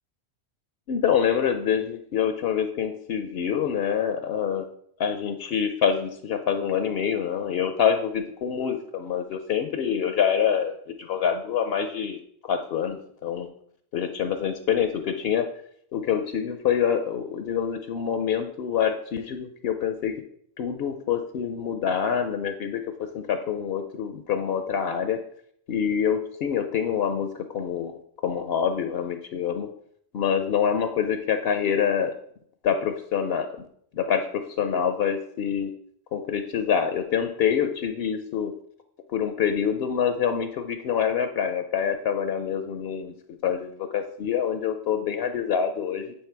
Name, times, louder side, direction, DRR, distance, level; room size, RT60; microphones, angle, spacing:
voice 1, 0.9-4.7 5.0-13.5 13.9-15.5 15.9-20.1 20.6-25.2 25.7-29.7 30.1-32.2 32.6-33.6 33.9-35.7 36.1-38.5 39.1-46.1, left 8 dB, 70° left, 8 dB, 0.8 m, -26 dB
8.2 x 3.2 x 4.4 m, 0.66 s
omnidirectional pair, 1.1 m